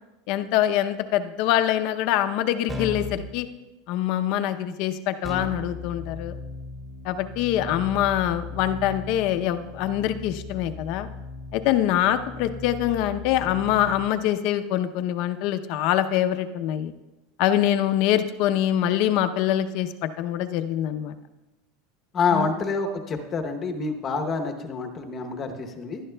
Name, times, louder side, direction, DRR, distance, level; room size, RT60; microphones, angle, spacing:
voice 1, 0.3-3.5 3.9-6.3 7.0-11.1 11.5-16.9 17.4-21.2 22.3-22.5, left 11 dB, 50° left, 10 dB, 0.6 m, -24 dB
Keyboard (musical), 2.7-3.2 5.2-14.1, left 2 dB, 20° right, 1.9 m, -37 dB
voice 2, 22.1-26.0, left 4 dB, 25° left, 6 dB, 0.9 m, -27 dB
17.5 x 11.5 x 2.3 m, 1.1 s
supercardioid pair, 155°, 0 cm